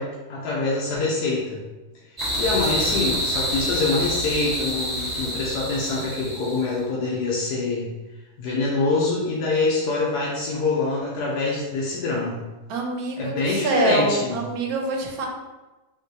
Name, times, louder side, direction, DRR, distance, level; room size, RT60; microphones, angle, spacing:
voice 1, 0.0-1.6 2.1-7.9 8.4-12.4 13.2-14.4, left 3 dB, 75° left, -5 dB, 1.2 m, -25 dB
sound 1, 2.2-6.7, equal, 25° right, 1.2 m, -27 dB
voice 2, 12.7-15.3, right 3 dB, 70° right, 1 dB, 1.0 m, -26 dB
3.8 x 2.7 x 2.6 m, 1.1 s
omnidirectional pair, 1.8 m